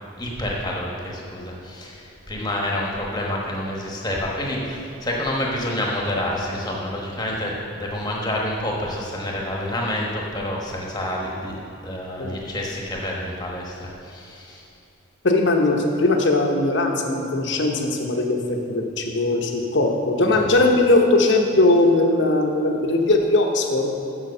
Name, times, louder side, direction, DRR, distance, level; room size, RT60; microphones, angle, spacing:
voice 1, 0.2-11.6 11.8-14.7 20.3-20.4, left 1 dB, 20° left, -2 dB, 1.1 m, -28 dB
voice 2, 15.2-24.0, left 2 dB, 60° left, 2 dB, 0.9 m, -19 dB
7.0 x 5.8 x 6.6 m, 2.6 s
head